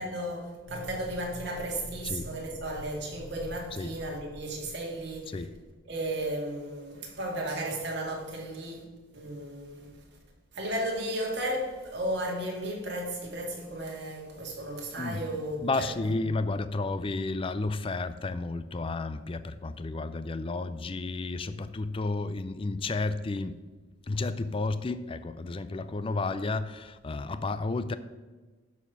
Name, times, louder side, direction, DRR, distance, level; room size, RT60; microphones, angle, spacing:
voice 1, 0.0-5.4 5.9-8.8 9.1-9.9 10.5-16.1, right 1 dB, 60° right, 2.0 m, -34 dB
sound 1, 0.7-6.1, right 1 dB, 60° left, 1.2 m, -46 dB
voice 2, 15.6-23.6 24.1-28.0, left 3 dB, 30° left, 0.4 m, -32 dB
11.5 x 4.3 x 5.7 m
head